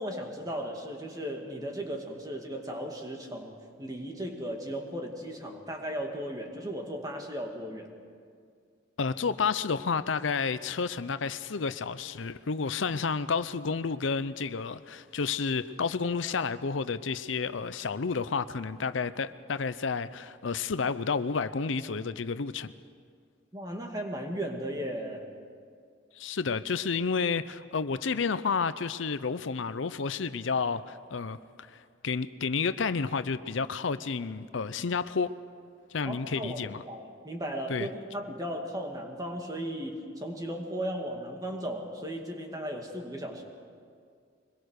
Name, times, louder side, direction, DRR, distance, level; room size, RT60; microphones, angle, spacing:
voice 1, 0.0-3.5 3.8-7.9 23.5-25.3 36.0-43.4, equal, 20° right, 2 dB, 2.3 m, -36 dB
voice 2, 9.0-22.7 26.2-35.3 35.9-36.8 37.7-37.9, left 5 dB, 75° left, 13 dB, 0.6 m, -31 dB
24.5 x 21.0 x 6.5 m, 2.2 s
head